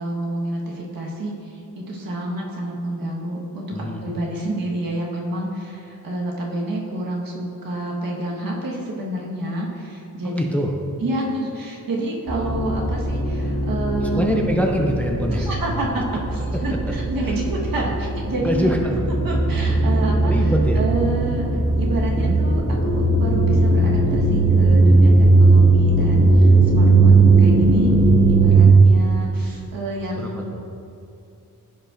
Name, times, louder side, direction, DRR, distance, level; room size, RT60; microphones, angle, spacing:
voice 1, 0.0-10.4 11.0-14.3 15.3-18.7 19.2-21.4 21.8-27.9 28.3-30.6, right 1 dB, 75° right, -3 dB, 1.5 m, -29 dB
voice 2, 3.7-4.0 10.2-10.7 14.1-15.5 18.4-19.1 20.3-20.8 22.1-22.4 27.8-28.0 30.2-30.6, equal, 5° left, 1 dB, 0.5 m, -24 dB
sound 1, 12.3-28.7, right 3 dB, 55° right, 1.9 m, -18 dB
14.5 x 5.2 x 2.6 m, 2.7 s
wide cardioid pair, 170°, 35 cm